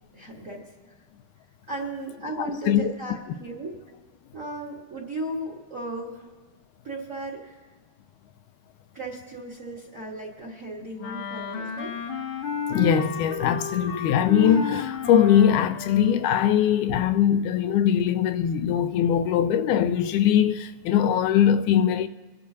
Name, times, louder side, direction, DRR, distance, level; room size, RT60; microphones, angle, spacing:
voice 1, 0.1-1.0 1.7-3.7 4.3-6.3 6.8-7.7 8.9-11.9, right 2 dB, 35° right, 1.6 m, -36 dB
voice 2, 2.4-2.9 12.7-22.1, left 9 dB, 80° left, 2.0 m, -21 dB
Wind instrument woodwind instrument, 11.0-16.2, left 4 dB, 65° left, 1.4 m, -32 dB
24.5 x 11.5 x 2.8 m
omnidirectional pair, 3.6 m